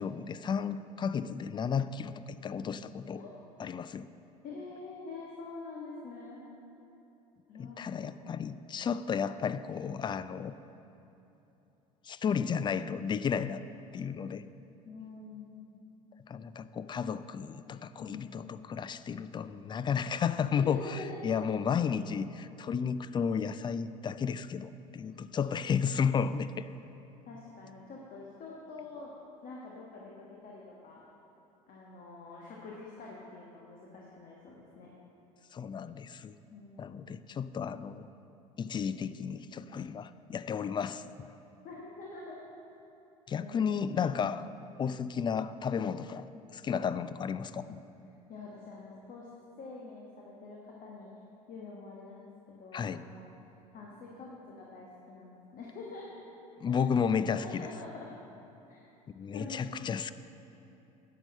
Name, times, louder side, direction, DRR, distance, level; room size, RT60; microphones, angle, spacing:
voice 1, 0.0-3.2 3.6-4.1 7.6-10.5 12.0-13.6 13.9-14.4 16.3-26.7 35.5-36.4 36.8-38.1 38.6-41.3 43.3-44.5 44.8-47.8 52.7-53.0 56.6-57.7 59.2-60.1, left 6 dB, 25° left, 14 dB, 0.4 m, -33 dB
voice 2, 4.4-6.4 7.5-8.2 14.8-15.8 18.0-18.3 20.6-21.4 27.2-29.1 29.4-31.0 31.7-34.9 36.5-37.1 41.6-42.4 43.4-44.2 48.3-49.3 49.6-51.1 51.5-52.3 52.6-53.3 53.7-56.3 56.7-56.8 57.3-58.1 58.7-58.8 59.3-60.0, left 3 dB, 45° left, -3 dB, 1.5 m, -46 dB
10.5 x 6.7 x 6.5 m, 3.0 s
figure-of-eight pair, 65°, 20 cm